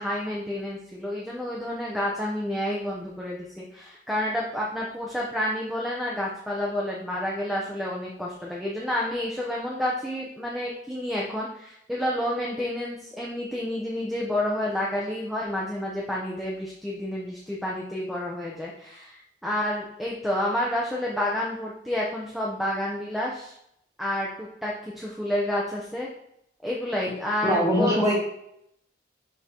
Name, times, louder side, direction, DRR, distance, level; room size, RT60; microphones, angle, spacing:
voice 1, 0.0-23.5 24.0-26.1 26.6-28.1, left 1 dB, ahead, -4 dB, 0.6 m, -29 dB
voice 2, 27.4-28.1, equal, 15° right, -5 dB, 1.9 m, -22 dB
10.0 x 3.8 x 2.9 m, 0.77 s
head